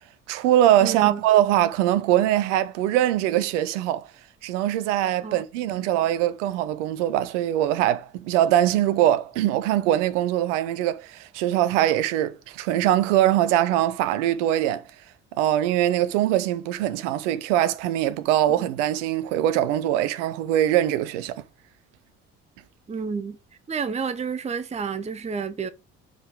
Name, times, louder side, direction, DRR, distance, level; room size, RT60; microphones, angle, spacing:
voice 1, 0.3-4.1 4.4-14.8 15.4-21.4, right 12 dB, 65° right, 0.7 m, -22 dB
voice 2, 0.8-1.2 5.2-5.4 18.6-18.7 22.9-23.4 23.7-25.7, right 5 dB, 15° right, 0.7 m, -30 dB
5.7 x 5.0 x 6.0 m
figure-of-eight pair, 45°, 38 cm